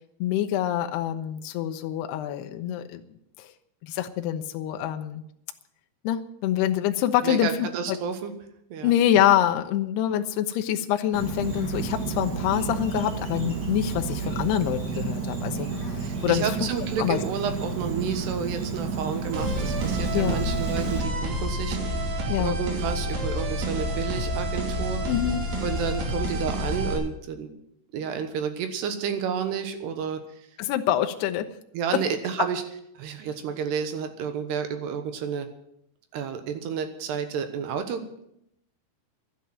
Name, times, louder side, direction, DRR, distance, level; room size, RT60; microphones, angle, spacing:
voice 1, 0.2-3.0 3.4-3.5 3.8-5.2 6.0-8.0 8.8-15.7 16.2-16.6 17.0-17.2 20.1-20.4 22.3-22.5 25.1-25.4 30.6-31.5, left 11 dB, 90° left, 7 dB, 2.3 m, -25 dB
voice 2, 7.2-8.3 8.7-8.9 16.0-25.0 25.6-27.5 27.9-30.2 31.7-32.6 33.0-35.5 36.1-38.0, right 7 dB, 70° right, 7 dB, 2.9 m, -30 dB
Insect, 11.1-21.0, right 4 dB, 40° right, 1.6 m, -31 dB
sound 1, 19.3-26.9, equal, 85° right, 5.6 m, -29 dB
12.0 x 10.0 x 9.2 m, 0.76 s
omnidirectional pair, 5.9 m